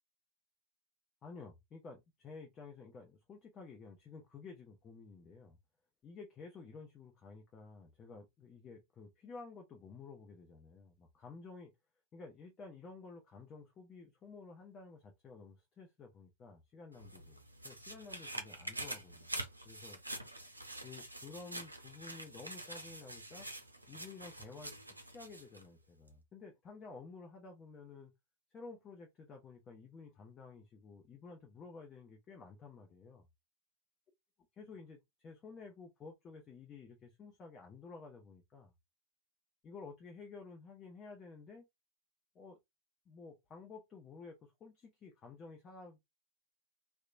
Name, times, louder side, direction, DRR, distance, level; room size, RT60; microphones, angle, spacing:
voice 1, 1.2-5.6 6.0-11.7 12.1-19.4 19.6-20.0 20.8-23.5 23.9-28.1 28.5-33.3 34.6-38.7 39.6-41.7 42.3-42.6 43.1-46.0, left 4 dB, 25° left, 0.7 m, -52 dB
sound 1, 16.9-25.7 26.1-26.2, right 1 dB, 85° right, 0.5 m, -46 dB
2.9 x 2.2 x 2.5 m
figure-of-eight pair, 90°, 0 cm